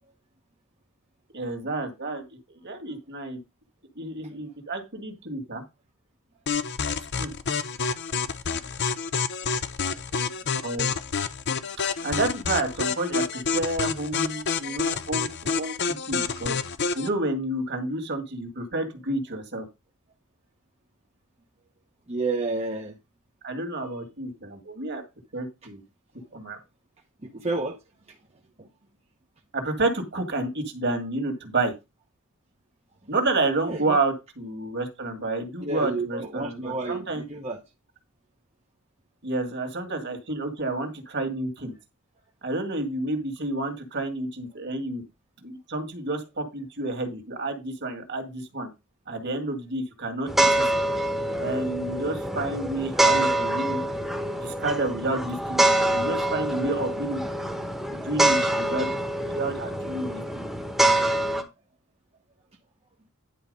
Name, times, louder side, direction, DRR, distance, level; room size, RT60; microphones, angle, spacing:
voice 1, 1.3-2.2 2.6-3.4 4.0-5.6 7.2-7.3 10.6-10.9 12.0-15.7 16.1-16.6 16.9-19.7 23.4-25.0 25.3-25.8 26.3-26.6 29.5-31.7 33.1-37.2 39.2-41.7 42.4-45.0 45.4-48.7 49.1-50.6 51.4-53.8 54.4-55.6 55.9-57.2 57.9-58.9 59.2-60.5, right 2 dB, 50° right, 2.0 m, -30 dB
sound 1, 6.5-17.1, left 5 dB, 50° left, 0.7 m, -28 dB
voice 2, 22.1-22.9 27.2-27.8 28.6-28.7 33.6-34.0 35.6-37.6 51.3-51.4 55.7-55.8, right 3 dB, 30° right, 1.0 m, -30 dB
sound 2, 50.3-61.4, right 1 dB, ahead, 1.2 m, -25 dB
10.5 x 4.3 x 5.4 m
head